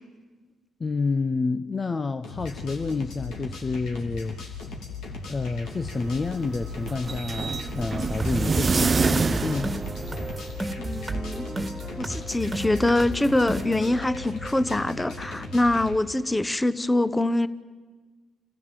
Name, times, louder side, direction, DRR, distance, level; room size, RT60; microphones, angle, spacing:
voice 1, 0.8-4.7 5.3-9.7, left 4 dB, 35° left, 10 dB, 0.8 m, -29 dB
sound 1, 2.2-16.0, left 4 dB, 70° left, 3.2 m, -38 dB
sound 2, 5.6-10.7, right 4 dB, 40° right, 0.6 m, -27 dB
sound 3, 8.2-16.2, right 1 dB, 20° right, 1.9 m, -35 dB
voice 2, 10.8-11.5 12.0-17.5, left 1 dB, 15° left, 15 dB, 1.0 m, -24 dB
27.0 x 15.0 x 7.6 m, 1.4 s
hypercardioid pair, 50°, 0 cm